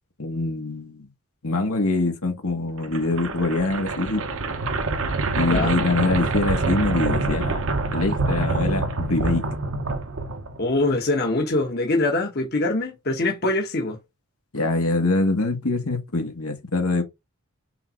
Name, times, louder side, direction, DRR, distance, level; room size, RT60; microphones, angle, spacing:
voice 1, 0.2-1.1 1.4-4.3 5.4-9.5 14.5-17.0, left 2 dB, 85° left, 2.0 m, -24 dB
sound 1, 2.8-10.8, right 3 dB, 65° right, 0.9 m, -26 dB
voice 2, 5.5-5.8 10.6-14.0, left 2 dB, 45° left, 1.2 m, -23 dB
5.6 x 4.1 x 4.9 m
head